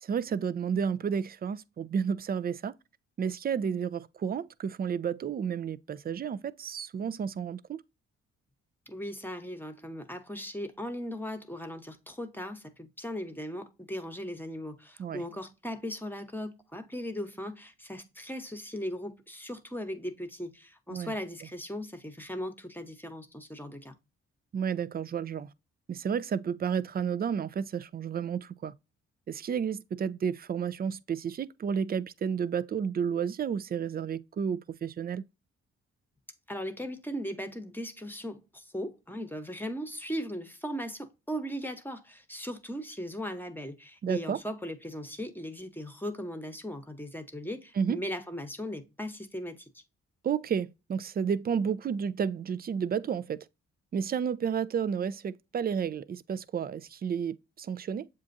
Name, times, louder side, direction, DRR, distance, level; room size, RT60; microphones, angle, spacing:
voice 1, 0.0-2.7 3.2-7.8 15.0-15.2 20.9-21.1 24.5-25.5 25.9-28.7 29.3-35.2 44.0-44.4 47.8-48.0 50.2-53.5 53.9-58.1, right 7 dB, 35° right, 0.4 m, -31 dB
voice 2, 8.9-24.0 36.5-49.7, equal, 5° left, 1.0 m, -38 dB
7.4 x 2.5 x 2.6 m
supercardioid pair, 55°, 29 cm